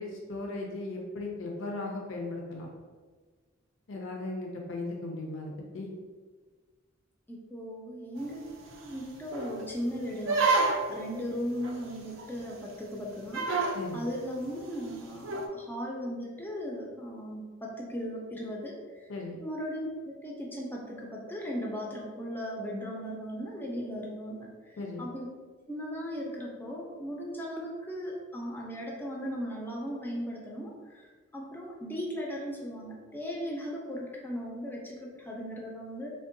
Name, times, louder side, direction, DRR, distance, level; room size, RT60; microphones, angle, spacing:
voice 1, 0.0-2.7 3.9-5.9 13.7-14.1 19.1-19.4 24.8-25.1, left 2 dB, 70° left, 0 dB, 0.4 m, -37 dB
voice 2, 7.3-10.4 10.9-19.1 19.4-25.3 25.7-36.1, equal, 10° left, -2 dB, 0.4 m, -37 dB
sound 1, 8.2-8.3 8.7-8.8 9.3-9.6 10.2-11.0 11.6-11.7 12.2-12.3 12.5-12.6 13.3-13.8 15.2-15.5, right 3 dB, 75° right, 0.4 m, -28 dB
3.5 x 2.2 x 2.5 m, 1.4 s
head